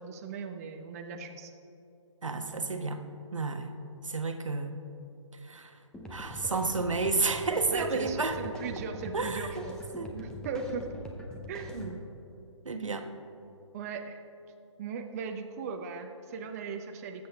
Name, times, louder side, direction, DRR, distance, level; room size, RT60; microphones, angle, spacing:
voice 1, 0.0-1.5 7.7-9.8 10.1-10.9 11.5-11.8 13.7-14.2 14.8-17.3, right 5 dB, 30° right, 4 dB, 0.7 m, -38 dB
voice 2, 2.2-3.0 3.3-3.8 4.0-4.8 5.4-5.7 6.1-8.4 9.1-9.5 10.0-10.1 11.7-12.0 12.6-13.1, right 3 dB, 85° right, 6 dB, 1.1 m, -31 dB
sound 1, 5.9-11.9, equal, 5° left, 0.7 m, -43 dB
19.0 x 7.8 x 3.4 m, 2.9 s
figure-of-eight pair, 145°, 16 cm